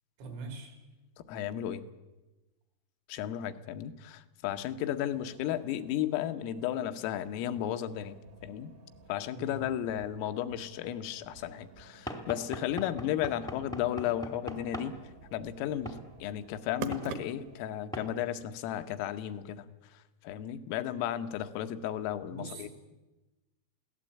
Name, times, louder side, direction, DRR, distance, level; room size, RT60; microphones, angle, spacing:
voice 1, 0.2-0.7 9.3-9.6 22.3-22.7, right 3 dB, 80° right, 6 dB, 6.3 m, -42 dB
voice 2, 1.3-1.8 3.1-8.7 9.1-15.0 15.3-16.0 16.2-19.7 20.3-22.7, left 11 dB, 90° left, 9 dB, 3.7 m, -34 dB
Vending Machine, 4.8-17.7, right 6 dB, 65° right, 2.9 m, -49 dB
Knock / Wood, 12.1-14.9 15.8-16.0 16.9-17.1 17.9-18.1, equal, 5° left, 0.7 m, -40 dB
23.0 x 17.0 x 8.6 m, 1.1 s
omnidirectional pair, 5.8 m